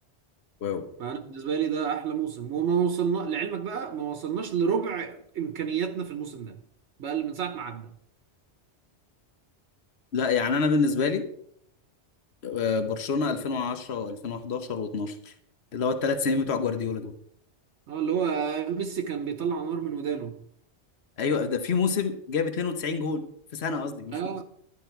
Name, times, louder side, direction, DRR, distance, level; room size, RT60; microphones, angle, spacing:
voice 1, 1.0-6.6 7.0-7.9 17.9-20.4 24.1-24.4, right 7 dB, 80° right, 1.2 m, -29 dB
voice 2, 10.1-11.2 12.4-15.3 15.7-17.1 21.2-23.2 23.5-24.2, left 5 dB, 65° left, 1.3 m, -27 dB
11.5 x 10.5 x 4.5 m
omnidirectional pair, 1.2 m